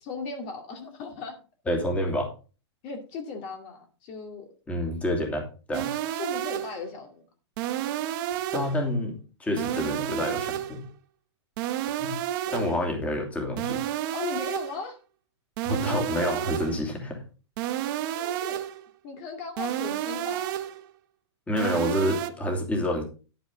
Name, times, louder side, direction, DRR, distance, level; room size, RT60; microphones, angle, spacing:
voice 1, 0.0-1.4 2.8-4.5 6.1-7.2 12.5-12.8 14.1-15.0 18.1-18.6 19.0-20.5, left 5 dB, 35° left, 3 dB, 2.3 m, -37 dB
voice 2, 1.7-2.3 4.7-5.9 8.5-10.8 12.0-12.1 12.5-13.8 15.6-17.2 21.5-23.0, left 1 dB, 10° left, 1 dB, 2.8 m, -28 dB
sound 1, 5.7-6.8 7.6-8.8 9.6-10.8 11.6-12.8 13.6-14.8 15.6-16.8 17.6-18.8 19.6-20.8 21.6-22.3, right 12 dB, 45° right, 1.2 m, -31 dB
11.0 x 9.3 x 3.8 m, 0.34 s
hypercardioid pair, 150°, 15 cm